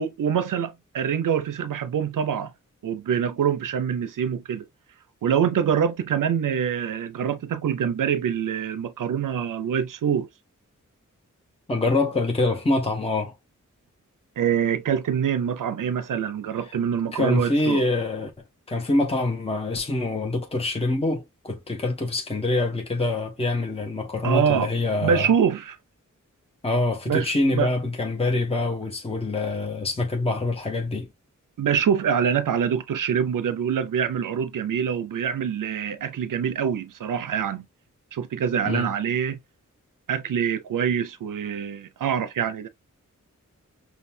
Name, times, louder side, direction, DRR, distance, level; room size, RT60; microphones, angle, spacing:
voice 1, 0.0-2.5 2.8-4.6 5.2-10.3 14.4-17.8 24.2-24.7 25.0-25.8 27.1-27.7 31.6-37.7 38.1-39.4 40.1-42.7, right 8 dB, 80° right, 0.5 m, -25 dB
voice 2, 11.7-13.3 17.1-18.3 18.7-25.3 26.6-31.1 38.6-38.9, left 2 dB, 20° left, 0.9 m, -25 dB
5.4 x 2.3 x 2.6 m
cardioid pair, 60°, 31 cm